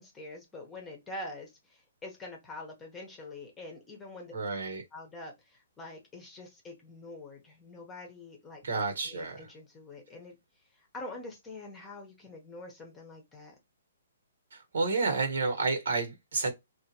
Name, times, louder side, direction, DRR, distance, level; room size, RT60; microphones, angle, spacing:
voice 1, 0.0-4.3 4.9-8.6 9.0-10.4 10.7-13.5, left 2 dB, 10° left, 0.9 m, -45 dB
voice 2, 4.3-4.8 8.6-9.5 14.5-16.5, right 3 dB, 80° right, 1.4 m, -30 dB
3.5 x 2.5 x 2.9 m
hypercardioid pair, 165°, 0 cm